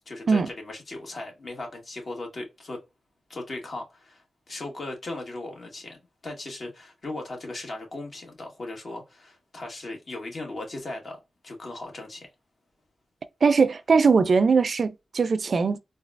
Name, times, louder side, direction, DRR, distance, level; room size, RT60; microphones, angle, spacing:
voice 1, 0.1-2.8 3.3-6.0 6.2-12.3, left 2 dB, 55° left, 1.7 m, -37 dB
voice 2, 13.4-15.8, right 5 dB, 60° right, 0.4 m, -20 dB
3.9 x 2.3 x 2.5 m
wide cardioid pair, 85°, 0 cm